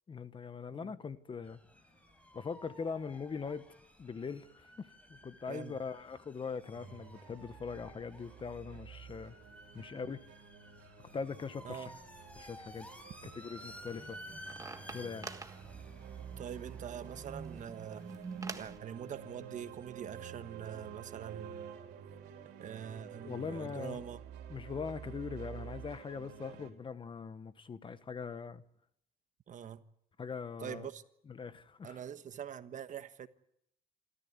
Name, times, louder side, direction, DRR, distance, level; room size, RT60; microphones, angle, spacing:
voice 1, 0.1-1.6 2.3-3.7 4.0-9.3 9.7-10.2 11.1-11.9 12.4-14.2 14.9-15.3 23.2-24.1 24.5-28.6 30.2-30.9 31.3-32.0, left 5 dB, 30° left, 1.2 m, -41 dB
sound 1, 1.4-20.9, equal, 10° left, 4.2 m, -55 dB
sound 2, 6.7-26.7, right 8 dB, 80° right, 4.0 m, -50 dB
voice 2, 9.8-10.1 11.6-11.9 16.4-18.1 18.5-21.8 22.6-24.2 29.5-29.8 30.6-31.0 31.8-33.3, right 8 dB, 50° right, 1.3 m, -44 dB
sound 3, 13.7-18.8, right 4 dB, 20° right, 1.5 m, -47 dB
27.5 x 14.5 x 9.6 m
cardioid pair, 110°, 17 cm